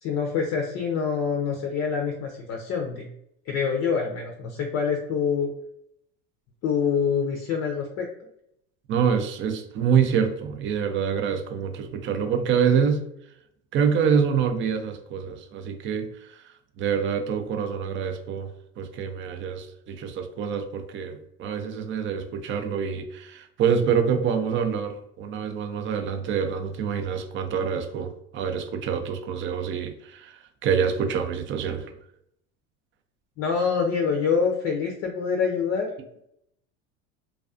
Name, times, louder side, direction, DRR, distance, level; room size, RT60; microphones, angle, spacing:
voice 1, 0.0-3.1 3.5-5.5 6.6-8.1 33.4-35.9, left 6 dB, 45° left, 2 dB, 0.5 m, -26 dB
voice 2, 8.9-13.0 13.7-18.5 18.8-31.9, right 7 dB, 35° right, 6 dB, 0.4 m, -26 dB
2.4 x 2.2 x 2.4 m, 0.75 s
hypercardioid pair, 95°, 36 cm